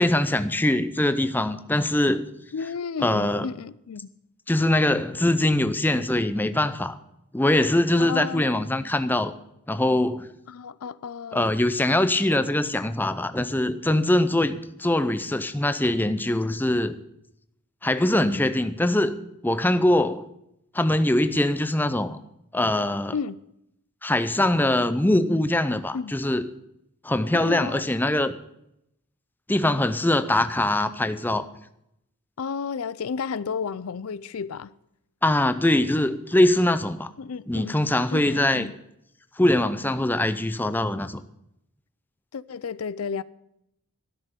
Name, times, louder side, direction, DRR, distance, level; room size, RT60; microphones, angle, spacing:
voice 1, 0.0-2.3 3.0-3.5 4.5-7.0 7.3-9.3 9.7-10.3 11.3-17.0 17.8-19.2 19.4-20.3 20.7-22.2 22.5-23.1 24.0-26.5 27.0-28.4 29.5-31.5 35.2-37.1 37.5-38.7 39.4-41.2, left 1 dB, 10° left, 0.5 m, -22 dB
voice 2, 2.5-4.1 8.0-8.6 10.5-11.5 23.1-23.4 25.9-26.1 27.3-27.8 32.4-34.7 37.2-37.8 38.1-38.7 42.3-43.2, left 6 dB, 75° left, 0.5 m, -32 dB
12.5 x 6.7 x 9.3 m
head